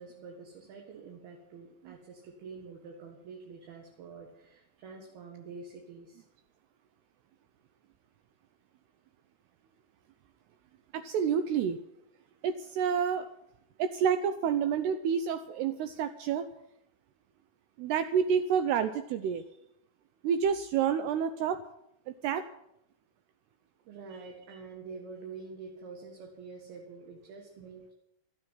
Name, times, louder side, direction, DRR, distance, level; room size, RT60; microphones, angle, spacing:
voice 1, 0.0-6.2 23.9-27.9, right 4 dB, 60° right, 0 dB, 3.5 m, -47 dB
voice 2, 10.9-11.8 12.4-13.3 13.8-16.5 17.8-19.4 20.2-21.6 22.1-22.4, right 7 dB, 80° right, 9 dB, 2.4 m, -29 dB
13.0 x 9.8 x 9.3 m, 0.80 s
omnidirectional pair, 5.5 m